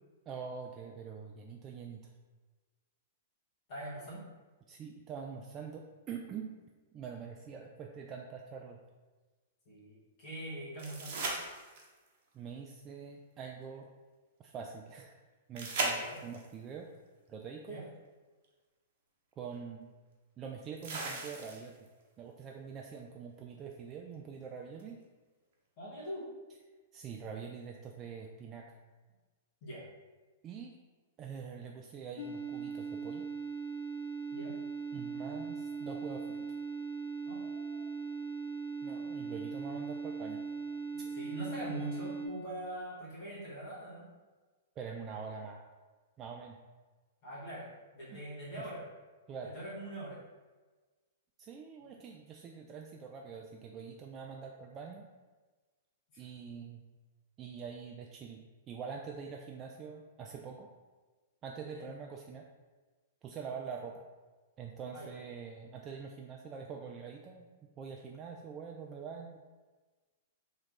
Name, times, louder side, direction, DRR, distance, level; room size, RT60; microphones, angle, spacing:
voice 1, 0.3-2.1 4.7-6.5 6.9-8.8 12.3-13.9 14.4-15.1 15.5-16.9 17.3-17.8 19.4-19.9 20.4-21.8 22.2-25.0 26.9-28.7 30.4-30.8 31.2-33.3 34.9-36.5 38.8-40.4 44.8-45.6 46.2-46.6 48.1-48.2 48.6-48.7 49.3-49.5 51.4-55.1 56.2-56.8 57.4-60.7 61.4-62.4 63.2-64.0 64.6-67.5 67.8-69.4, right 6 dB, 30° right, 1 dB, 0.3 m, -44 dB
voice 2, 3.7-4.2 9.6-11.3 16.0-16.2 17.6-17.9 25.8-26.3 29.6-29.8 34.3-34.6 37.2-37.9 41.1-44.1 47.2-48.8 49.4-50.2 56.1-56.2 61.7-61.9 64.9-65.1, right 1 dB, 50° left, -9 dB, 1.5 m, -43 dB
sound 1, 10.8-12.1 15.6-16.5 18.4-18.5 20.8-21.9 24.8-24.9, right 3 dB, 55° right, 0.9 m, -37 dB
sound 2, 32.2-42.3, right 5 dB, 65° left, 0.4 m, -39 dB
3.1 x 3.0 x 3.9 m, 1.3 s
hypercardioid pair, 110°, 0 cm